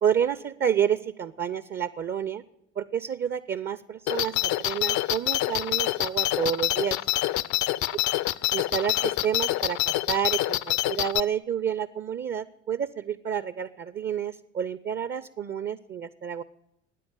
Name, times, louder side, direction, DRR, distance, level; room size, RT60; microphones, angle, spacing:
voice 1, 0.0-2.4 2.8-7.0 8.5-16.4, right 8 dB, 30° right, 16 dB, 0.6 m, -29 dB
sound 1, 4.1-11.2, left 16 dB, 50° left, 0.6 m, -26 dB
13.0 x 9.5 x 9.1 m, 0.84 s
figure-of-eight pair, 55°, 37 cm